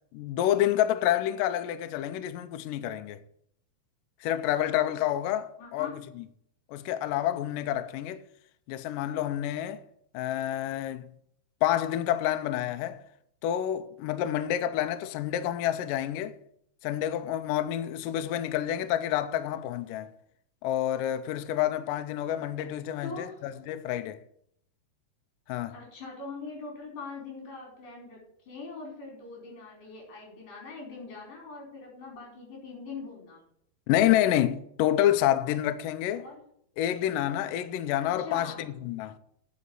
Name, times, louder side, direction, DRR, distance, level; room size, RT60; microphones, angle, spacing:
voice 1, 0.1-3.2 4.2-5.9 6.2-6.3 6.7-8.2 8.7-9.8 10.1-11.1 11.6-13.0 13.4-16.4 16.8-20.1 20.6-24.2 25.5-25.7 33.9-36.2 36.8-39.2, left 12 dB, 90° left, 1.9 m, -28 dB
voice 2, 5.6-6.0 23.0-23.4 25.7-28.2 28.5-33.4 36.2-36.4 38.2-38.8, left 4 dB, 55° left, 6.3 m, -42 dB
9.5 x 6.4 x 8.5 m
omnidirectional pair, 4.6 m